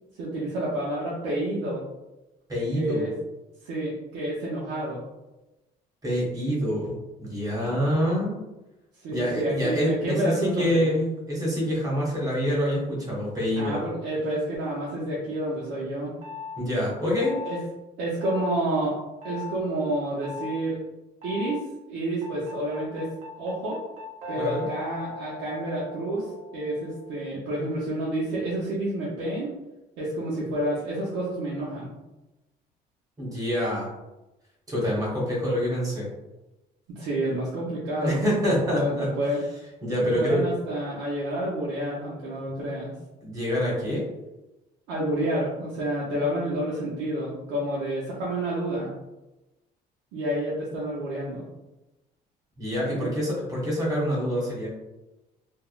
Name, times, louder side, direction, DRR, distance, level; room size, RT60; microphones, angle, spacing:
voice 1, 0.2-1.8 2.7-3.1 3.6-5.0 7.7-7.8 9.0-10.9 13.6-16.1 17.4-17.6 18.0-18.9 19.2-20.8 21.2-23.1 23.4-23.8 24.3-26.3 26.5-29.5 30.0-31.9 37.0-38.2 38.7-39.4 40.0-42.9 44.9-48.9 50.1-51.5 52.9-53.1, right 1 dB, 90° right, -6 dB, 0.7 m, -29 dB
voice 2, 2.5-3.1 6.0-6.9 7.2-8.4 9.1-13.8 16.6-17.3 24.4-24.7 33.2-33.9 34.7-36.1 38.0-39.1 39.8-40.4 43.2-44.0 52.6-54.7, equal, 20° right, -5 dB, 1.2 m, -26 dB
sound 1, 16.2-16.6 17.2-17.6 18.2-18.6 19.2-19.5 20.2-20.6 21.2-21.6 22.2-27.3, left 4 dB, 45° right, 0.9 m, -39 dB
3.4 x 2.1 x 2.4 m, 1.0 s
cardioid pair, 110°, 17 cm